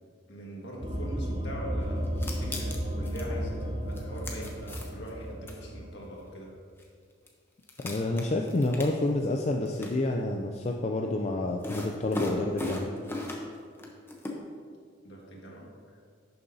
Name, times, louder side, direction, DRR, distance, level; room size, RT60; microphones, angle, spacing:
voice 1, 0.3-6.5 15.0-16.0, equal, 60° left, -3 dB, 1.7 m, -42 dB
sound 1, 0.8-6.0, equal, 25° right, 0.7 m, -33 dB
sound 2, 2.0-3.3 3.9-5.1 5.5-5.6 6.8-6.9 7.3-7.4 7.6-9.3 9.7-9.9 11.6-13.5 13.8-14.4, left 2 dB, 10° left, 0.8 m, -36 dB
voice 2, 7.8-12.9, left 2 dB, 35° left, 1 dB, 0.4 m, -29 dB
11.0 x 6.7 x 2.7 m, 2.1 s
head